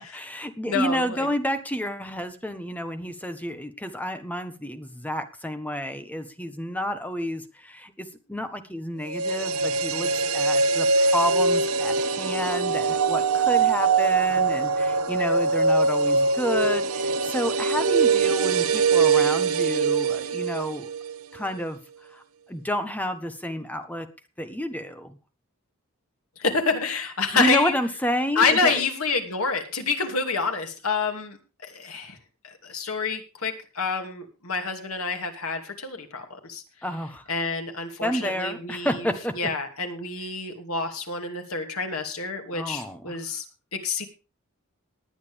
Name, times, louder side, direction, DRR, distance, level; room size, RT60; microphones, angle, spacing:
voice 1, 0.1-20.9 21.3-21.8 22.1-22.2 22.5-24.1 24.4-25.1 27.3-28.8 36.8-37.2 38.0-39.3 42.5-43.1, equal, 5° left, 8 dB, 1.3 m, -30 dB
voice 2, 0.7-1.3 26.4-27.7 28.4-32.2 32.4-36.6 37.3-39.1 39.3-43.4 43.7-44.1, left 4 dB, 90° left, 5 dB, 2.7 m, -28 dB
sound 1, 9.1-21.2 21.5-21.6, right 4 dB, 85° right, 0.8 m, -23 dB
19.0 x 9.4 x 3.6 m, 0.33 s
head